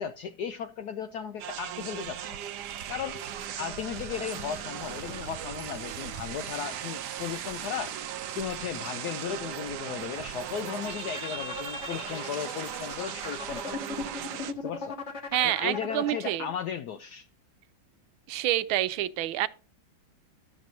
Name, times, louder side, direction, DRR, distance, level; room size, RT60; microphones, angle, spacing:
voice 1, 0.0-2.4 2.9-3.2 3.6-7.9 8.3-13.8 14.6-15.0 15.4-17.3, left 8 dB, 80° left, 0.9 m, -36 dB
sound 1, 1.4-14.5, right 9 dB, 70° right, 1.0 m, -37 dB
sound 2, 7.5-14.1, left 2 dB, 50° left, 5.2 m, -57 dB
sound 3, 10.3-16.5, left 4 dB, 35° left, 1.7 m, -39 dB
voice 2, 15.3-16.5 18.3-19.5, right 14 dB, 85° right, 1.4 m, -27 dB
11.5 x 7.5 x 2.6 m
omnidirectional pair, 2.2 m